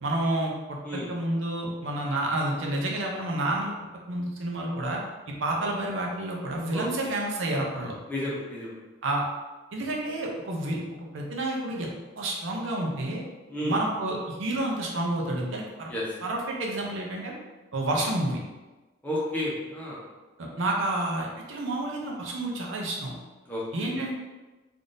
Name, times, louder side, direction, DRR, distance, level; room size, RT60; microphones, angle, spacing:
voice 1, 0.0-3.7 4.1-5.0 5.4-7.9 9.0-9.2 9.7-10.8 11.1-11.9 12.2-13.2 13.6-15.9 16.2-17.3 17.7-18.4 20.4-23.1 23.7-24.2, right 1 dB, 75° right, -1 dB, 0.6 m, -29 dB
voice 2, 8.1-8.7 13.5-13.8 15.9-16.0 19.0-20.0 23.4-24.0, left 1 dB, 10° left, -7 dB, 0.7 m, -32 dB
3.4 x 2.5 x 2.6 m, 1.2 s
head